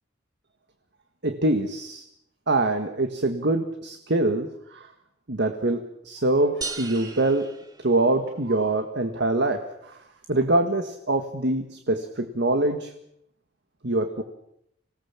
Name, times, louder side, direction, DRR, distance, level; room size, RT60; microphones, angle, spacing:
voice 1, 1.2-2.0 2.5-4.9 5.3-7.5 7.8-10.0 10.3-12.9 13.8-14.2, right 2 dB, 60° right, 6 dB, 1.7 m, -24 dB
sound 1, 6.6-8.5, right 4 dB, 20° right, 2.2 m, -37 dB
26.0 x 18.5 x 7.3 m, 0.77 s
head